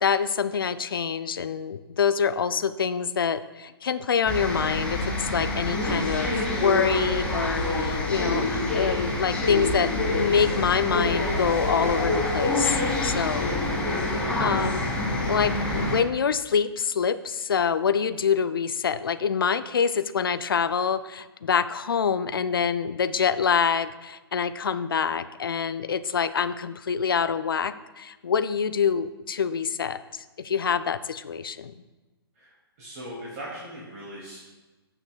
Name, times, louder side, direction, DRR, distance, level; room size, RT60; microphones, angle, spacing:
voice 1, 0.0-9.9 10.2-13.5 14.4-14.9 15.2-31.7, left 6 dB, 60° left, 13 dB, 0.5 m, -26 dB
sound 1, 4.3-16.0, left 2 dB, 5° left, 1.6 m, -26 dB
voice 2, 32.3-34.4, equal, 40° right, -6 dB, 2.3 m, -39 dB
15.5 x 6.0 x 2.3 m, 1.2 s
figure-of-eight pair, 125°, 13 cm